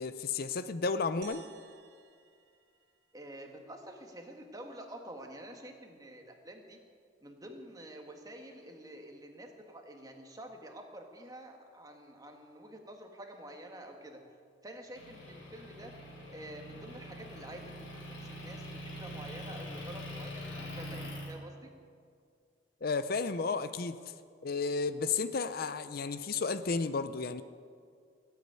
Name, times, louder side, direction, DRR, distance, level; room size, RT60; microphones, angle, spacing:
voice 1, 0.0-1.4 22.8-24.0 24.4-27.4, left 4 dB, 50° left, 12 dB, 0.5 m, -32 dB
sound 1, 1.2-3.7, right 8 dB, 60° right, 1.2 m, -56 dB
voice 2, 3.1-6.8 7.2-14.2 14.6-15.9 16.3-17.6 17.9-18.6 18.9-21.7, right 1 dB, 20° right, 3 dB, 1.7 m, -48 dB
Motor vehicle (road) / Engine, 15.0-21.3, equal, 80° left, 4.0 m, -44 dB
17.5 x 8.4 x 9.7 m, 2.2 s
head